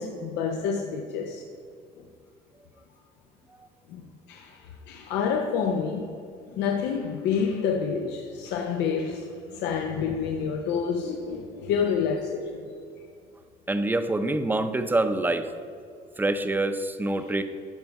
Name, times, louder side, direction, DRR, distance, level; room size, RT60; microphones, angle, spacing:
voice 1, 0.0-1.4 3.9-6.2 6.5-12.7 17.2-17.3, left 6 dB, 90° left, 0.7 m, -28 dB
voice 2, 13.7-15.5 16.2-17.4, right 2 dB, 10° right, 0.6 m, -25 dB
13.0 x 5.2 x 4.7 m
cardioid pair, 110°, 17 cm